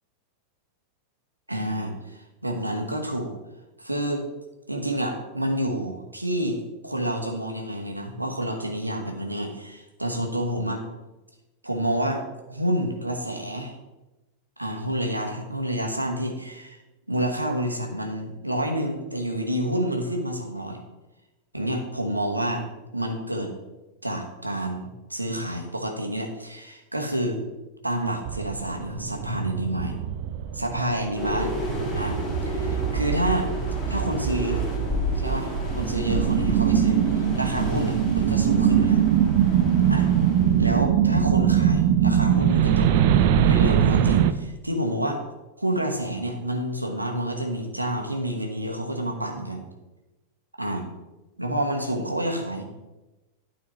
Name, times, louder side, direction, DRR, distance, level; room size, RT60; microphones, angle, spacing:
voice 1, 1.5-3.3 3.8-4.2 4.7-10.8 11.6-12.2 12.5-13.7 14.6-16.8 17.1-20.8 21.5-22.7 22.9-23.5 24.0-27.4 27.8-30.0 30.5-31.6 32.0-32.2 32.4-33.5 33.9-34.6 35.2-39.0 39.9-40.1 40.6-42.9 43.3-45.2 45.6-49.7 50.6-50.9 51.4-52.6, right 1 dB, 85° right, 2 dB, 1.1 m, -28 dB
sound 1, 28.3-44.3, right 9 dB, 50° right, 0.4 m, -22 dB
sound 2, 31.2-40.7, left 2 dB, 15° left, 2.0 m, -32 dB
12.0 x 4.1 x 3.1 m, 1.1 s
figure-of-eight pair, 90°, 0 cm